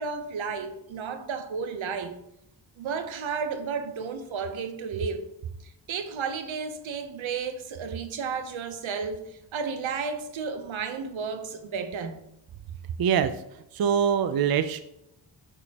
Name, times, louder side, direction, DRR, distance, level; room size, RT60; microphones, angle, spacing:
voice 1, 0.0-2.2 2.8-5.3 5.6-12.2, right 5 dB, 80° right, 1.0 m, -33 dB
voice 2, 13.0-13.3 13.7-14.8, right 8 dB, 50° right, 0.6 m, -23 dB
9.0 x 6.3 x 2.9 m
cardioid pair, 70°, 46 cm